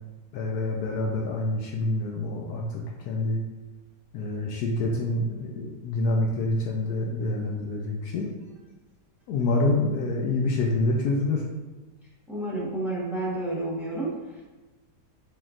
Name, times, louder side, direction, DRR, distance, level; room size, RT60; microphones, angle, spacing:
voice 1, 0.3-3.4 4.1-8.3 9.3-11.4, left 2 dB, 70° left, -1 dB, 1.0 m, -27 dB
voice 2, 12.3-14.4, right 2 dB, ahead, -7 dB, 0.9 m, -30 dB
4.9 x 3.6 x 2.4 m, 1.2 s
omnidirectional pair, 1.8 m